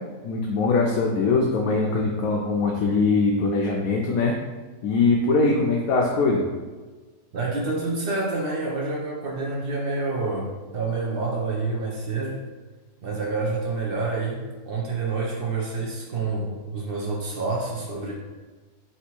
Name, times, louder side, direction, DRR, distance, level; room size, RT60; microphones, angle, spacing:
voice 1, 0.2-4.4 4.8-6.4, left 3 dB, 70° left, -1 dB, 1.0 m, -22 dB
voice 2, 7.3-12.4 13.0-18.1, right 3 dB, 55° right, -2 dB, 0.6 m, -28 dB
3.5 x 2.9 x 4.3 m, 1.3 s
omnidirectional pair, 1.6 m